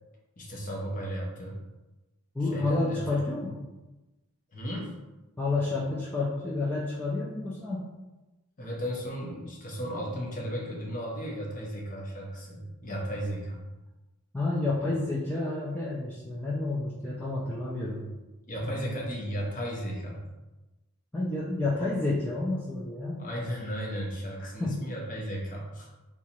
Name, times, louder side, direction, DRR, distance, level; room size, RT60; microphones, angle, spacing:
voice 1, 0.4-1.6 2.5-3.0 4.5-4.9 8.6-13.6 18.5-20.2 23.2-25.9, equal, 35° left, -3 dB, 0.8 m, -35 dB
voice 2, 2.3-3.6 5.4-7.9 14.3-18.1 18.6-18.9 21.1-23.2 24.4-24.8, left 2 dB, 10° left, -7 dB, 0.4 m, -30 dB
2.8 x 2.4 x 4.1 m, 1.1 s
head